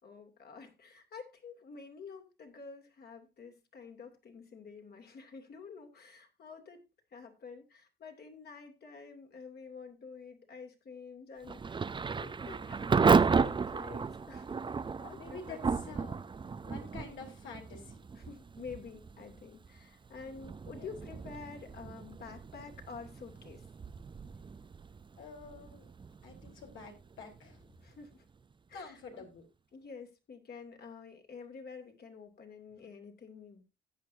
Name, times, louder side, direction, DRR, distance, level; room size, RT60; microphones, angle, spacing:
voice 1, 0.0-6.8 7.1-14.5 15.0-16.0 18.1-23.7 27.8-28.3 28.7-29.3 29.7-33.6, left 5 dB, 50° left, 2.7 m, -49 dB
Thunder / Rain, 11.4-28.2, right 5 dB, 25° right, 0.5 m, -34 dB
voice 2, 15.1-15.6 15.8-16.1 16.6-18.1 20.7-20.9 25.2-25.9 26.2-27.6 28.7-29.4, left 5 dB, 80° left, 3.9 m, -48 dB
14.0 x 8.9 x 2.7 m
cardioid pair, 90°, 20 cm